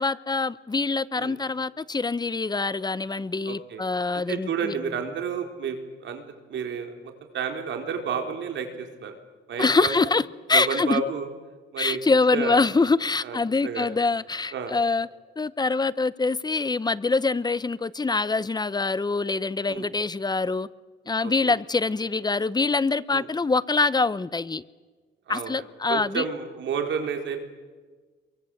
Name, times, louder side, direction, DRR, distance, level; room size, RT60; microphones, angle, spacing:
voice 1, 0.0-4.7 9.6-11.0 11.8-15.1 15.4-20.7 21.1-24.6 25.3-26.2, left 3 dB, 20° left, 0.9 m, -24 dB
voice 2, 3.5-3.8 4.3-6.2 6.5-9.1 9.5-10.1 10.5-11.3 11.7-12.0 12.3-12.6 13.2-13.4 13.6-13.9 14.5-14.8 19.7-19.9 21.2-21.5 23.1-23.3 25.3-27.4, right 6 dB, 70° right, 4.5 m, -31 dB
27.5 x 23.5 x 8.0 m
cardioid pair, 90°, 20 cm